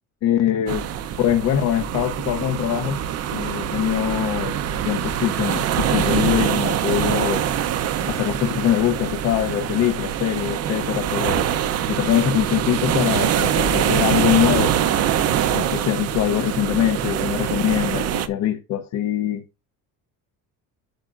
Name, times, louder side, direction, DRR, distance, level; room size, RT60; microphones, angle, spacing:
voice 1, 0.2-0.9 1.2-3.0 3.3-4.5 4.8-7.4 8.0-11.4 11.9-14.7 15.5-19.4, left 11 dB, 50° left, 0.9 m, -23 dB
sound 1, 0.7-18.3, right 10 dB, 45° right, 0.8 m, -24 dB
10.5 x 7.3 x 2.6 m
cardioid pair, 170°, 35 cm